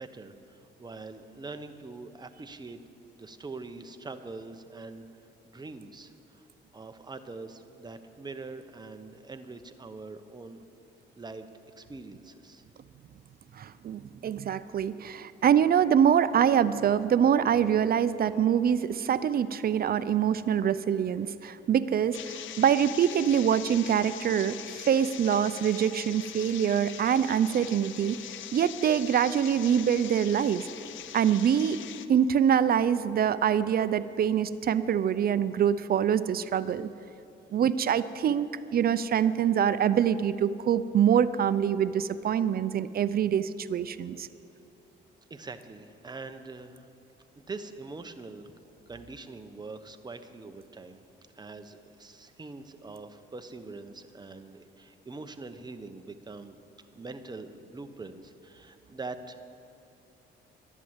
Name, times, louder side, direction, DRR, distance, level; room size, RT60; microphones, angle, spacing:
voice 1, 0.0-2.8 3.1-5.0 5.4-6.4 6.7-10.6 11.2-11.5 11.8-12.6 45.3-46.9 47.4-48.5 48.9-51.0 51.3-59.4, right 3 dB, 20° right, 8 dB, 0.9 m, -43 dB
voice 2, 13.6-28.2 28.5-30.7 31.1-31.8 32.1-36.9 37.5-38.5 38.7-44.3, right 8 dB, 50° right, 15 dB, 0.5 m, -25 dB
sound 1, 22.1-32.1, left 11 dB, 75° left, 0.6 m, -42 dB
12.0 x 11.0 x 8.1 m, 2.7 s
cardioid pair, 90°, 20 cm